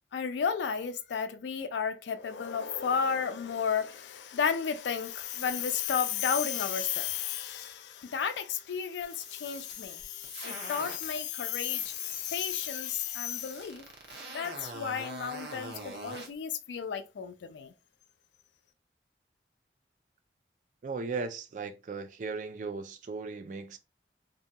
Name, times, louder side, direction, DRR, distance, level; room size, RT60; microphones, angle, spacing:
voice 1, 0.1-13.8 14.3-17.7, left 7 dB, 80° left, 0.3 m, -32 dB
sound 1, 9.0-11.2 11.6-16.3, right 2 dB, 70° right, 0.8 m, -44 dB
voice 2, 20.8-23.8, right 4 dB, 45° right, 0.3 m, -37 dB
2.7 x 2.7 x 2.2 m
head